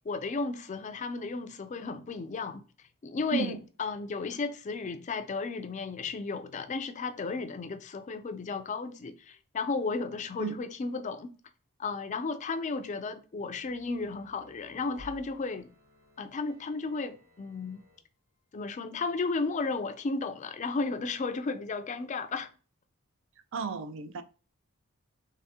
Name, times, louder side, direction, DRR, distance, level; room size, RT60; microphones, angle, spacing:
voice 1, 0.1-2.6 3.0-11.4 11.8-15.7 16.2-17.8 18.5-22.5, left 4 dB, 35° left, 0.4 m, -34 dB
sound 1, 13.6-18.0 18.4-18.5, left 2 dB, 75° right, 2.1 m, -56 dB
voice 2, 23.5-24.2, right 6 dB, 60° right, 0.4 m, -33 dB
3.5 x 3.2 x 2.8 m
head